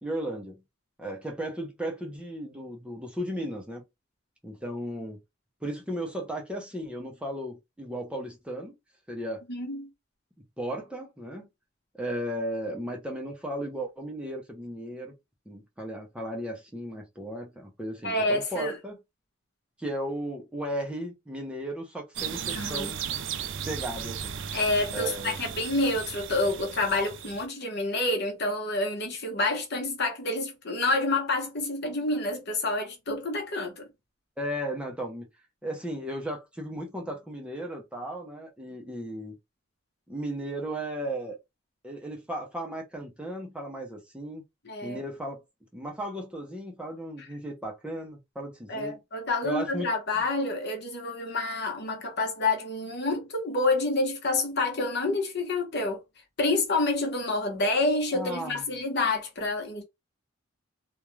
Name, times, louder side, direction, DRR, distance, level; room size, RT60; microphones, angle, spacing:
voice 1, 0.0-0.6 1.0-3.8 4.4-5.2 5.6-8.8 9.1-9.4 10.6-11.5 12.0-15.1 15.5-18.9 19.8-23.0 23.7-24.4 24.9-25.4 34.4-35.3 35.6-39.3 40.1-41.4 41.8-44.4 44.8-45.4 45.7-49.0 49.4-49.9 58.1-58.6, right 1 dB, 5° right, 0.6 m, -35 dB
voice 2, 9.5-9.9 18.0-18.8 22.5-22.9 24.5-33.9 44.6-45.0 47.2-47.3 48.7-56.0 56.4-59.8, left 2 dB, 55° left, 0.9 m, -28 dB
sound 1, 22.2-27.5, right 8 dB, 65° right, 0.4 m, -36 dB
2.4 x 2.2 x 3.0 m
head